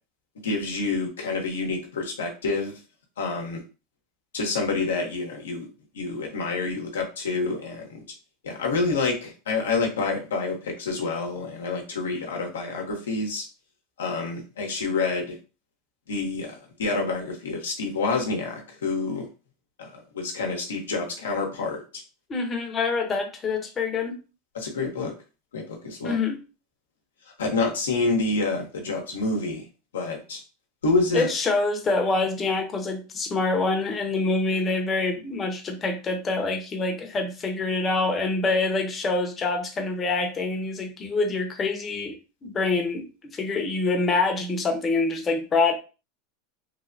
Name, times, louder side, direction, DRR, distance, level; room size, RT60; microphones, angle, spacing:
voice 1, 0.4-2.7 3.2-3.6 4.3-5.7 5.9-8.0 8.4-13.4 14.0-15.4 16.1-19.3 19.8-21.8 24.5-25.1 25.5-26.2 27.4-29.7 29.9-30.4 30.8-31.3, left 3 dB, 90° left, 1 dB, 0.8 m, -28 dB
voice 2, 22.3-24.2 26.0-26.4 31.1-42.2 42.4-43.0 43.3-45.7, left 3 dB, 30° left, 5 dB, 0.7 m, -25 dB
3.1 x 2.1 x 2.6 m, 0.32 s
hypercardioid pair, 100°, 0 cm